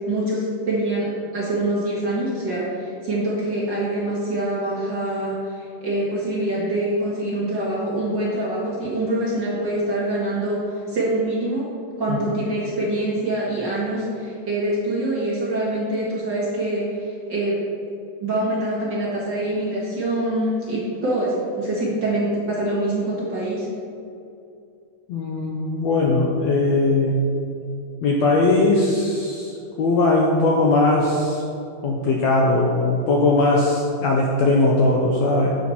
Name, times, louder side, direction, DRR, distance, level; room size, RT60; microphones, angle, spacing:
voice 1, 0.1-11.7 12.0-17.6 18.2-23.7, right 1 dB, 40° right, -7 dB, 1.8 m, -25 dB
voice 2, 25.1-27.2 28.0-31.4 31.8-35.6, left 2 dB, 70° left, -2 dB, 1.7 m, -19 dB
10.0 x 7.5 x 4.3 m, 2.6 s
omnidirectional pair, 3.9 m